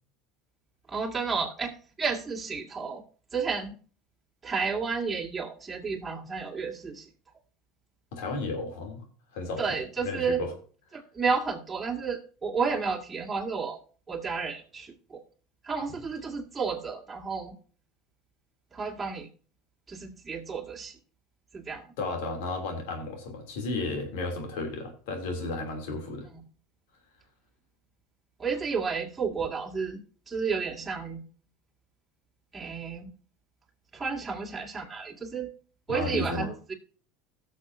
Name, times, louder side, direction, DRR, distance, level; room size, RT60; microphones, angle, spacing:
voice 1, 0.9-1.7 2.0-3.0 3.3-3.7 4.4-7.1 9.6-10.4 10.9-13.8 14.1-15.2 15.6-17.5 18.7-19.3 19.9-21.0 21.5-21.9 26.3-26.4 28.4-30.0 30.3-31.2 32.5-33.1 33.9-35.5 35.9-36.7, right 5 dB, 15° right, -2 dB, 2.3 m, -31 dB
voice 2, 8.1-9.0 9.3-9.6 10.0-10.5 22.0-26.3 35.9-36.5, left 3 dB, 75° left, 3 dB, 3.0 m, -33 dB
17.0 x 6.6 x 2.7 m, 0.41 s
supercardioid pair, 95°, 0 cm